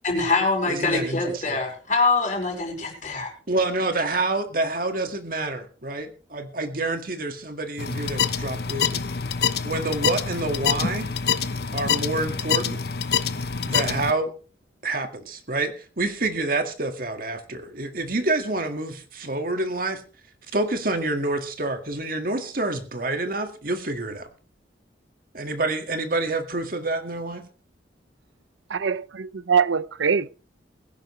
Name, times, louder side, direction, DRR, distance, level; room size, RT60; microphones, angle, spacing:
voice 1, 0.0-3.3, left 3 dB, 40° left, 4.8 m, -24 dB
voice 2, 0.7-1.4 3.5-9.0 9.6-11.1 11.7-12.8 13.6-14.3 14.8-20.0 20.5-24.3 25.3-27.4, right 2 dB, 50° right, 1.9 m, -27 dB
sound 1, 7.8-14.1, left 6 dB, 55° left, 0.8 m, -26 dB
voice 3, 28.7-30.3, right 6 dB, 85° right, 0.6 m, -23 dB
21.5 x 10.5 x 3.2 m
head